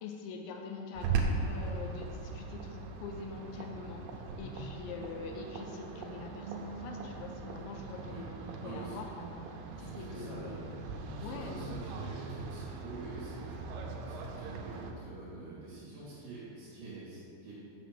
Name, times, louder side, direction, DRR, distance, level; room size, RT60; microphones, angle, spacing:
voice 1, 0.0-9.3 9.8-10.6 11.2-11.7, left 4 dB, 85° left, 3 dB, 2.9 m, -44 dB
sound 1, 0.9-14.9, right 4 dB, 80° right, 3.1 m, -39 dB
voice 2, 8.6-9.1 9.8-10.7 11.2-13.7 14.0-17.5, right 2 dB, 50° right, -8 dB, 3.0 m, -47 dB
7.3 x 7.0 x 6.0 m, 2.6 s
omnidirectional pair, 5.4 m